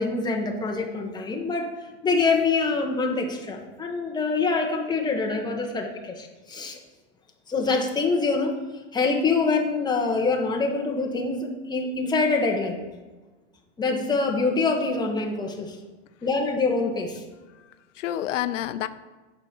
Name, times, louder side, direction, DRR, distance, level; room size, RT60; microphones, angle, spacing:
voice 1, 0.0-1.7 2.0-6.8 7.5-8.5 8.9-12.8 13.8-15.8 16.2-17.2, left 4 dB, 10° left, 1 dB, 1.2 m, -25 dB
voice 2, 17.5-18.9, left 12 dB, 90° left, 13 dB, 0.6 m, -30 dB
8.3 x 5.2 x 6.0 m, 1.2 s
supercardioid pair, 135°, 36 cm